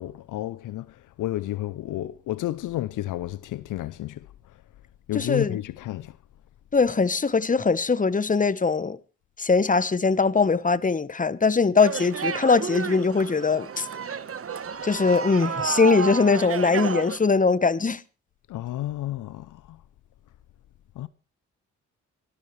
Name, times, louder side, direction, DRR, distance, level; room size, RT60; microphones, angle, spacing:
voice 1, 0.0-4.6 5.1-6.2 18.5-19.8 21.0-21.1, left 14 dB, 70° left, 0.6 m, -31 dB
voice 2, 5.1-5.6 6.7-9.0 9.4-13.9 14.8-18.0, left 4 dB, 25° left, 1.1 m, -21 dB
sound 1, 11.8-17.2, right 6 dB, 45° right, 1.2 m, -31 dB
25.0 x 12.5 x 3.2 m
supercardioid pair, 45°, 32 cm